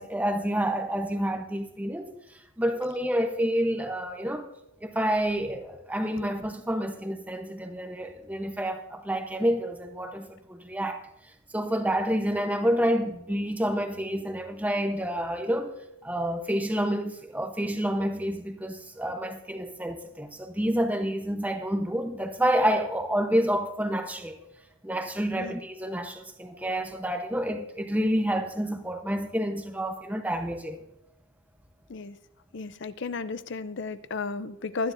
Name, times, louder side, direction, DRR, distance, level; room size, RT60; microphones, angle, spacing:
voice 1, 0.0-2.1 2.6-4.5 4.8-11.0 11.5-15.7 16.0-24.4 24.8-30.8, equal, 5° right, 0.9 m, -28 dB
voice 2, 32.5-34.9, left 4 dB, 55° left, 0.5 m, -33 dB
22.0 x 9.8 x 2.6 m
head